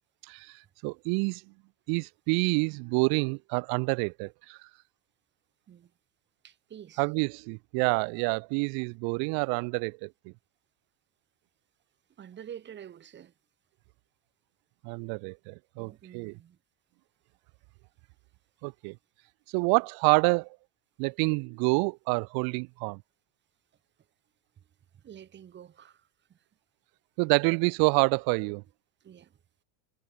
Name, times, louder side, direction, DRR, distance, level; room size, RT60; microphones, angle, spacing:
voice 1, 0.8-1.4 1.9-4.6 7.0-10.1 14.8-16.4 18.6-18.9 19.5-20.5 21.0-23.0 27.2-28.6, right 34 dB, 45° right, 1.4 m, -27 dB
voice 2, 6.4-7.0 12.2-13.3 15.8-16.6 24.9-26.4 29.0-29.4, right 9 dB, 20° right, 4.0 m, -48 dB
cardioid pair, 180°, 49 cm